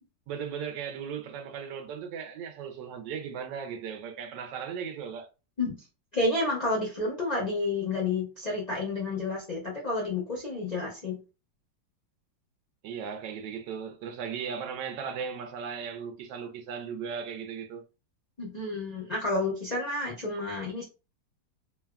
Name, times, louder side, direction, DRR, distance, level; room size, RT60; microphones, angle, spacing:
voice 1, 0.3-5.3 12.8-17.8, right 7 dB, 80° right, 1.2 m, -37 dB
voice 2, 6.1-11.2 18.4-20.8, left 2 dB, 60° left, 0.4 m, -30 dB
3.2 x 2.2 x 2.3 m
omnidirectional pair, 2.0 m